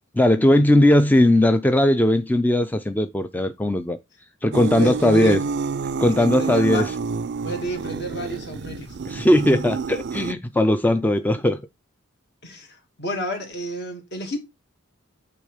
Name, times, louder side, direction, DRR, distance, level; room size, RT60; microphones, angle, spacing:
voice 1, 0.2-4.0 4.4-5.4 6.0-6.8 9.0-11.6, left 1 dB, 10° left, 0.4 m, -18 dB
sound 1, 4.5-10.3, right 5 dB, 55° right, 0.4 m, -28 dB
voice 2, 4.7-5.4 6.2-6.9 7.4-9.0 12.4-14.4, right 1 dB, 55° left, 2.4 m, -30 dB
8.6 x 3.5 x 4.9 m
head